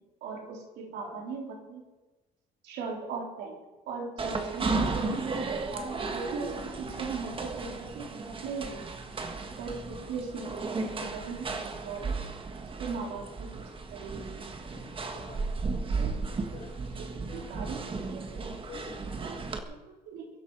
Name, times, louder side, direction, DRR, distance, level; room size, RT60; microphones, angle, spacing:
voice 1, 0.2-1.8 2.6-3.6 3.9-9.0 9.6-12.2 12.8-13.6 13.9-14.5 15.9-16.2 16.9-18.6 19.2-20.3, right 4 dB, 85° right, 1 dB, 3.7 m, -39 dB
sound 1, 4.2-19.6, right 4 dB, 30° right, 1.6 m, -34 dB
voice 2, 14.7-15.6 16.5-16.8 17.3-17.6 18.4-19.2, left 5 dB, 40° left, 0 dB, 3.1 m, -48 dB
22.5 x 11.0 x 4.8 m, 1.1 s
cardioid pair, 110°, 17 cm